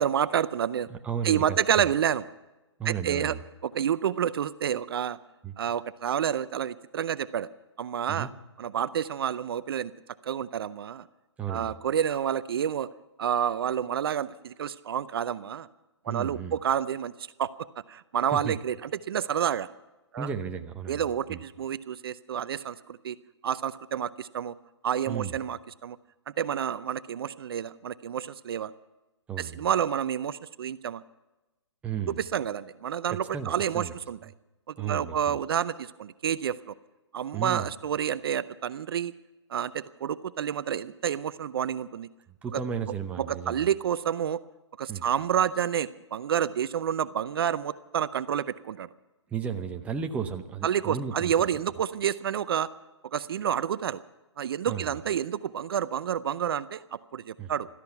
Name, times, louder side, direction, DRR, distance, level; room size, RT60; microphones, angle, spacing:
voice 1, 0.0-0.9 1.2-2.2 2.8-3.3 3.6-5.2 5.6-7.5 7.8-8.3 8.6-9.9 10.2-11.0 11.5-12.9 13.2-15.7 16.1-17.1 17.4-19.7 20.1-20.3 20.9-23.2 23.4-24.5 24.8-26.0 26.4-28.7 29.4-31.0 32.3-34.2 34.8-36.6 37.1-39.1 39.5-42.1 43.2-44.4 44.8-48.9 50.6-52.7 53.1-54.0 54.4-57.7, right 9 dB, 55° right, 15 dB, 0.5 m, -29 dB
voice 2, 0.9-1.9 2.8-3.4 5.4-5.5 8.1-8.3 11.4-11.8 16.1-16.6 18.3-18.6 20.2-21.0 21.3-21.4 25.1-25.4 29.3-29.6 31.8-32.2 33.1-33.9 34.8-35.4 37.3-37.7 42.4-43.7 44.9-45.1 49.3-51.3 54.7-55.0 57.4-57.5, right 7 dB, 10° right, 6 dB, 0.7 m, -34 dB
16.5 x 13.5 x 5.9 m, 1.0 s
hypercardioid pair, 150°, 15 cm